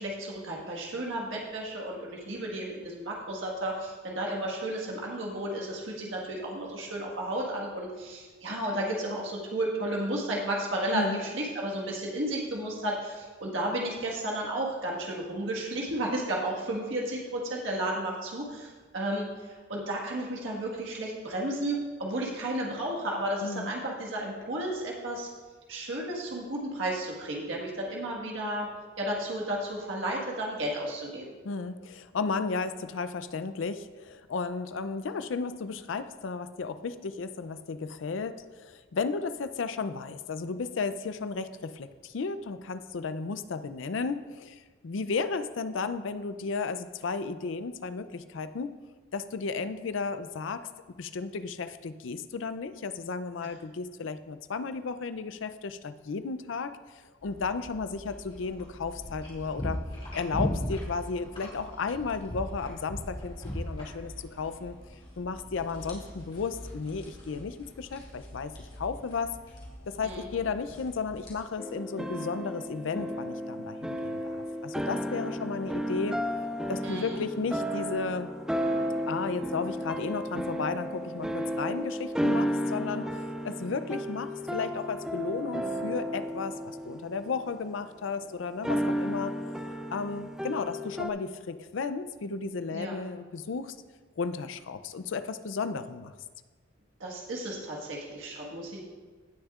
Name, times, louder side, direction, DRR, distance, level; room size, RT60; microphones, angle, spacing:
voice 1, 0.0-25.3 25.7-28.7 29.0-31.3 70.0-70.3 76.8-77.2 92.7-93.0 97.0-98.8, right 1 dB, 70° right, -2 dB, 1.6 m, -33 dB
voice 2, 23.4-23.7 31.4-48.7 49.1-50.7 51.0-56.7 57.2-59.8 60.1-64.8 65.2-68.5 68.8-69.4 69.9-76.2 76.7-78.3 79.1-89.3 89.9-93.8 94.2-96.1, left 4 dB, 65° left, 12 dB, 0.5 m, -34 dB
sound 1, 57.2-71.3, equal, 25° left, 2.3 m, -40 dB
sound 2, 71.6-88.0 88.6-91.1, equal, 5° right, 0.4 m, -33 dB
17.0 x 6.3 x 2.4 m, 1.4 s
head